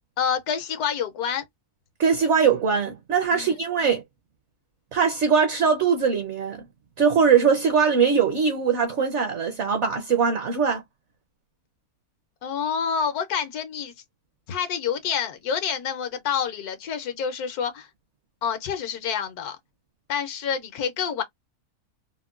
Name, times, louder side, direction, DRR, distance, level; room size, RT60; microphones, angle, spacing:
voice 1, 0.2-1.4 3.3-3.5 12.4-13.9 14.5-17.9 18.4-19.6 20.1-21.2, left 7 dB, 80° left, 1.2 m, -28 dB
voice 2, 2.0-4.0 4.9-6.6 7.0-10.8, right 6 dB, 60° right, 0.8 m, -21 dB
3.5 x 2.2 x 2.3 m
omnidirectional pair, 1.6 m